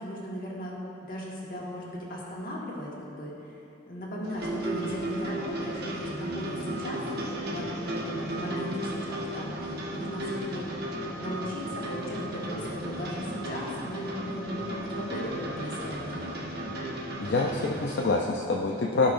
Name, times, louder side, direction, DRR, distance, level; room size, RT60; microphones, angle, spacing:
voice 1, 0.0-3.5 3.9-10.9 11.2-16.4, equal, 45° left, -4 dB, 1.6 m, -37 dB
sound 1, 4.2-18.1, right 1 dB, 55° right, 1.2 m, -35 dB
voice 2, 17.2-19.1, left 3 dB, 65° left, 0 dB, 0.5 m, -26 dB
15.5 x 5.7 x 2.6 m, 2.8 s
head